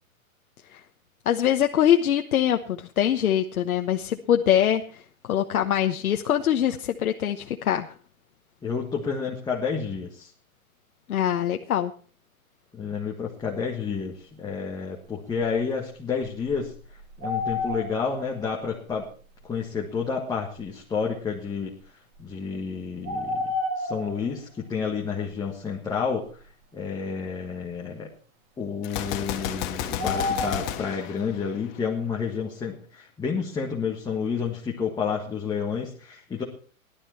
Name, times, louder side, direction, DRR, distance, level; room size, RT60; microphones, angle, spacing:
voice 1, 1.2-7.9 11.1-11.9, left 10 dB, 75° left, 5 dB, 1.2 m, -23 dB
voice 2, 8.6-10.3 12.7-16.7 17.2-19.1 19.4-21.7 22.2-23.5 23.8-26.2 26.7-28.1 28.6-36.4, left 6 dB, 10° left, -2 dB, 1.6 m, -30 dB
sound 1, 15.4-15.5 16.2-18.2 18.9-19.0 20.6-20.7 23.0-24.2 30.0-30.8, left 2 dB, 30° right, 2.1 m, -29 dB
Gunshot gunfire, 28.8-31.9, left 10 dB, 35° left, 1.5 m, -32 dB
16.5 x 12.0 x 4.4 m, 0.41 s
hypercardioid pair, 150°, 43 cm